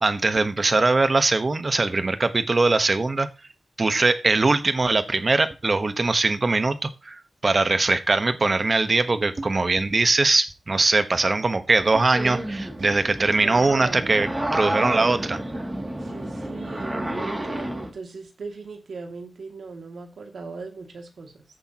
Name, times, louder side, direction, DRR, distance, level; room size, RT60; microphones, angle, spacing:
voice 1, 0.0-3.3 3.8-15.4, right 3 dB, 45° right, 10 dB, 1.1 m, -21 dB
sound 1, 12.1-17.9, right 1 dB, 20° right, 2.5 m, -30 dB
voice 2, 13.4-14.3 16.0-21.3, right 4 dB, 90° right, 3 dB, 2.3 m, -38 dB
14.5 x 8.1 x 2.9 m, 0.29 s
wide cardioid pair, 85°, 0 cm